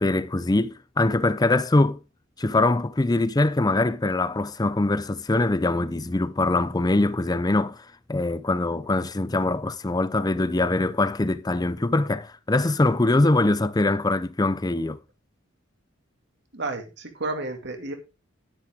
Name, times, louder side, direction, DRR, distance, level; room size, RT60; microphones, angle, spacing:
voice 1, 0.0-2.0 2.4-15.0, left 2 dB, 20° left, 0.5 m, -23 dB
voice 2, 16.5-17.9, right 2 dB, 60° right, 2.1 m, -31 dB
10.5 x 9.9 x 3.6 m
head